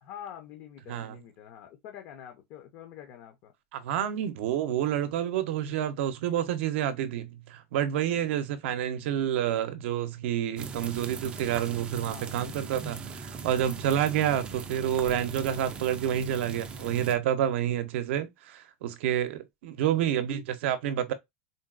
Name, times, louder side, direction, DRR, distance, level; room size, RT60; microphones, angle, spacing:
voice 1, 0.0-3.5 8.1-8.5 12.1-12.4, left 9 dB, 40° left, 0.5 m, -46 dB
voice 2, 3.7-21.1, right 10 dB, 65° right, 0.5 m, -29 dB
sound 1, 10.6-17.2, right 5 dB, 15° right, 0.3 m, -40 dB
3.8 x 2.2 x 2.3 m
supercardioid pair, 165°, 7 cm